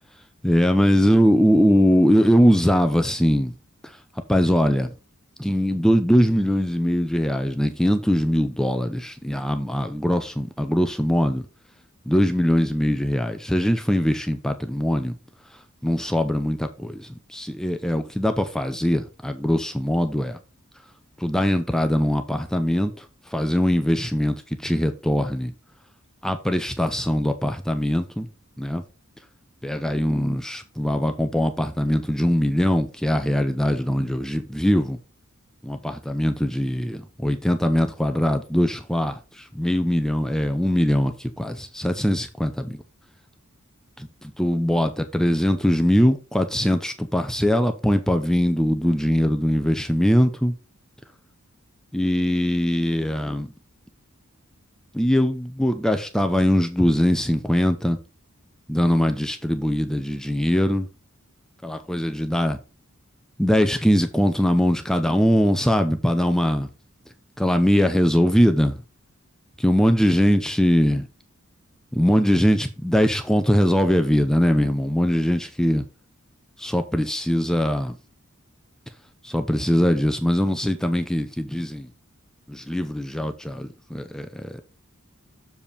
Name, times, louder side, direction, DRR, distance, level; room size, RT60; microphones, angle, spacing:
voice 1, 0.4-3.5 4.3-4.9 5.4-11.4 12.1-15.1 15.8-20.4 21.2-23.1 23.3-25.5 26.2-28.3 28.6-28.8 29.6-35.0 35.6-42.8 44.0-44.1 44.4-50.5 51.9-53.5 54.9-58.0 58.7-60.9 61.6-62.6 63.4-66.7 67.4-68.8 69.6-71.0 71.9-75.8 76.6-77.9 79.2-81.9 82.5-84.6, equal, 5° left, 0.7 m, -21 dB
7.1 x 4.6 x 5.2 m
head